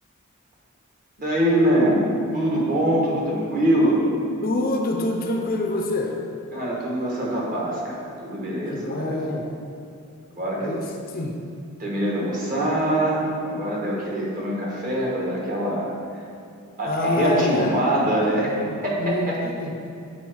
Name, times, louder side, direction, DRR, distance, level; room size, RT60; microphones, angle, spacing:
voice 1, 1.2-2.0 2.3-4.0 6.5-9.3 10.3-10.7 11.8-15.9 16.8-18.5 18.8-19.4, right 1 dB, 40° right, -4 dB, 1.4 m, -23 dB
voice 2, 4.4-6.2 8.7-9.5 10.6-11.4 16.8-17.8 19.0-19.8, left 2 dB, 40° left, 2 dB, 0.6 m, -26 dB
7.2 x 4.5 x 4.6 m, 2.5 s
head